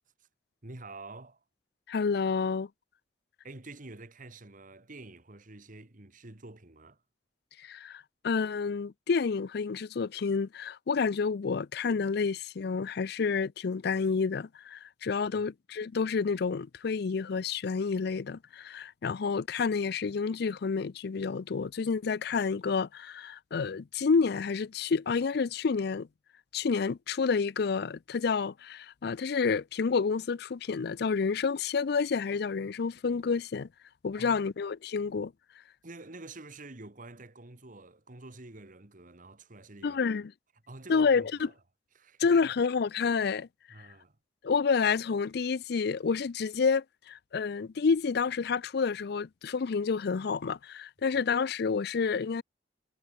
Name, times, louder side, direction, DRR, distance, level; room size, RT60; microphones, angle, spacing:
voice 1, 0.6-1.4 3.4-7.0 15.4-15.5 34.2-34.5 35.8-40.0 40.7-41.5 42.0-42.5 43.7-44.2, right 2 dB, 45° right, 1.8 m, -48 dB
voice 2, 1.9-2.7 7.6-26.1 26.5-33.7 34.0-35.3 39.8-40.3 40.9-41.5 42.2-43.5 44.4-52.4, left 5 dB, 60° left, 0.5 m, -29 dB
head